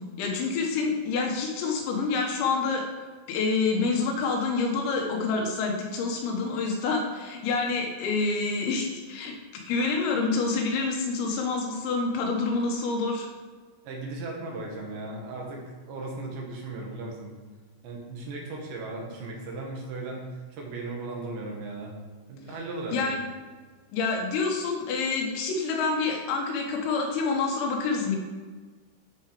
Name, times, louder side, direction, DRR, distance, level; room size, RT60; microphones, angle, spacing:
voice 1, 0.0-2.8 3.3-9.3 9.7-13.3 22.9-23.2 23.9-28.2, left 4 dB, 90° left, 1 dB, 4.2 m, -27 dB
voice 2, 13.9-17.3 17.8-21.9 22.3-23.1, right 2 dB, 65° right, -1 dB, 3.6 m, -37 dB
13.0 x 5.9 x 5.0 m, 1.4 s
omnidirectional pair, 5.8 m